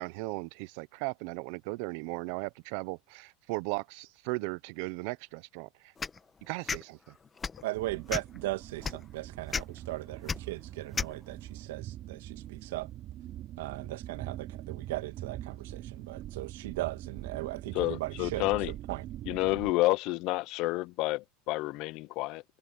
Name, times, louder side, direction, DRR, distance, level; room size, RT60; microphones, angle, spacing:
voice 1, 0.0-5.9 6.4-7.1, right 24 dB, 65° right, 0.8 m, -37 dB
sound 1, 6.0-6.2 6.7-6.8 7.4-7.6 8.1-8.4 8.8-9.0 9.5-9.6 10.3-10.4 11.0-11.1, left 5 dB, 20° left, 1.1 m, -32 dB
voice 2, 7.6-12.9 13.6-18.4 18.9-19.0, right 17 dB, 85° right, 2.0 m, -38 dB
sound 2, 7.7-19.7, right 13 dB, 45° right, 3.4 m, -43 dB
voice 3, 17.7-18.7 19.3-22.4, left 20 dB, 55° left, 0.8 m, -29 dB
supercardioid pair, 125°, 0 cm